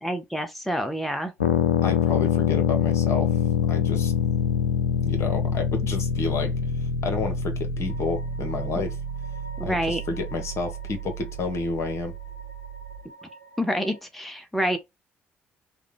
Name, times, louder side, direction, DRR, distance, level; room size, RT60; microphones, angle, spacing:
voice 1, 0.0-1.3 9.6-10.0 13.6-14.8, equal, ahead, 0.7 m, -27 dB
sound 1, 1.4-13.0, left 6 dB, 80° left, 0.4 m, -26 dB
voice 2, 1.8-3.4 3.7-4.1 5.0-6.5 7.0-9.0 9.6-12.1, left 4 dB, 45° left, 1.2 m, -30 dB
sound 2, 7.8-14.0, left 1 dB, 80° right, 0.6 m, -48 dB
5.0 x 2.3 x 3.3 m
figure-of-eight pair, 45°, 7 cm